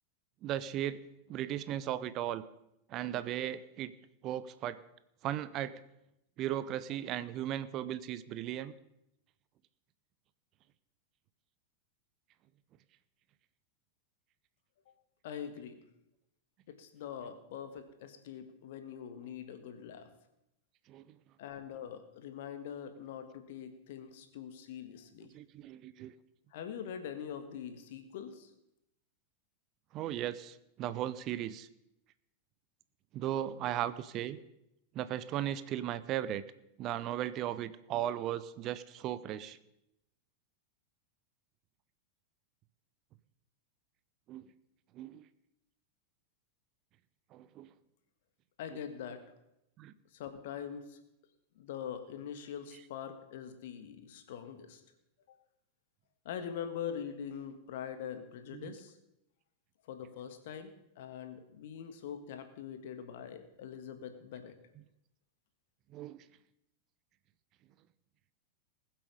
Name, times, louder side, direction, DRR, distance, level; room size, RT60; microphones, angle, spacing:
voice 1, 0.4-1.0 1.3-2.4 2.9-3.9 4.2-4.8 5.2-5.8 6.4-8.7 20.9-21.0 25.3-26.1 29.9-31.7 33.1-34.4 34.9-36.4 36.8-39.6 44.3-44.4 44.9-45.2 47.3-47.7 49.8-49.9 58.5-58.7 65.9-66.2, right 11 dB, 35° right, 15 dB, 0.6 m, -36 dB
voice 2, 15.2-15.8 16.7-20.1 21.4-25.3 26.5-28.5 48.6-49.2 50.1-51.0 51.5-54.8 56.2-58.9 59.9-64.5, left 8 dB, 55° left, 8 dB, 1.7 m, -43 dB
20.5 x 7.6 x 5.3 m, 0.84 s
figure-of-eight pair, 90°, 0 cm